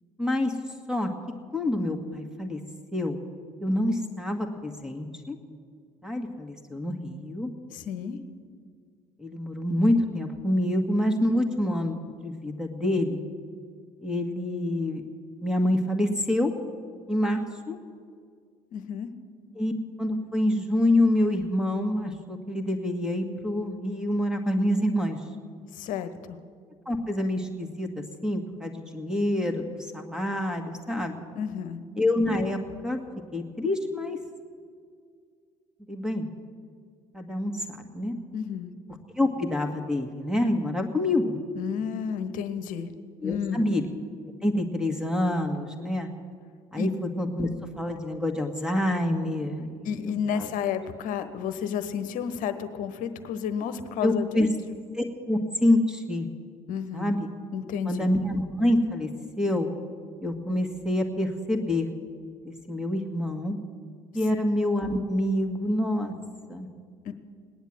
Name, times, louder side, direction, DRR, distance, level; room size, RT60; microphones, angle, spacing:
voice 1, 0.2-0.5 0.9-1.1 1.5-2.6 2.9-3.2 3.6-5.4 6.0-7.5 9.2-13.2 14.0-15.0 15.4-16.5 17.1-17.8 19.6-19.7 20.0-25.2 26.9-31.3 32.0-33.0 33.3-34.2 35.9-36.3 37.1-38.2 39.2-41.4 43.2-43.9 44.4-46.1 46.7-47.5 47.8-50.5 54.0-54.5 55.0-56.3 56.9-57.3 57.9-59.1 59.4-59.8 60.2-61.9 62.4-63.6 64.1-66.1 66.5-66.7, left 1 dB, 5° right, 5 dB, 2.0 m, -27 dB
voice 2, 7.7-8.2 18.7-19.1 25.7-26.4 31.3-31.8 38.3-38.7 41.5-42.9 43.2-43.7 46.8-46.9 49.8-54.5 56.7-57.1 57.5-58.1 67.0-67.1, left 7 dB, 55° left, 10 dB, 1.1 m, -31 dB
18.5 x 10.5 x 7.6 m, 2.1 s
figure-of-eight pair, 55°, 17 cm